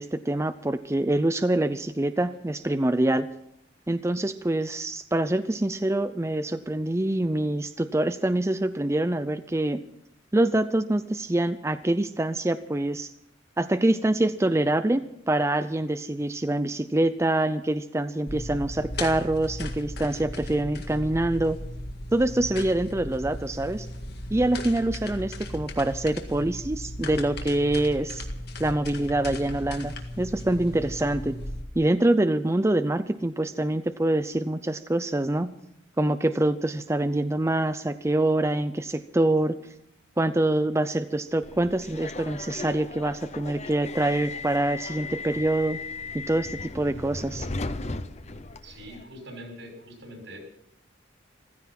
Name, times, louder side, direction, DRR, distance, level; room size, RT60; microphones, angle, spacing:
voice 1, 0.0-3.3 3.9-9.8 10.3-13.1 13.6-21.6 22.1-23.9 24.3-28.3 28.6-31.4 31.8-35.5 36.0-39.6 40.2-45.8 46.1-47.5, right 1 dB, 15° right, 11 dB, 0.5 m, -25 dB
sound 1, 18.3-31.6, left 1 dB, 60° left, 1.9 m, -36 dB
Subway metro underground, 41.4-49.0, left 3 dB, 35° left, 0.8 m, -36 dB
voice 2, 48.6-50.4, equal, 80° right, 2 dB, 6.2 m, -43 dB
15.5 x 15.0 x 5.9 m, 0.75 s
head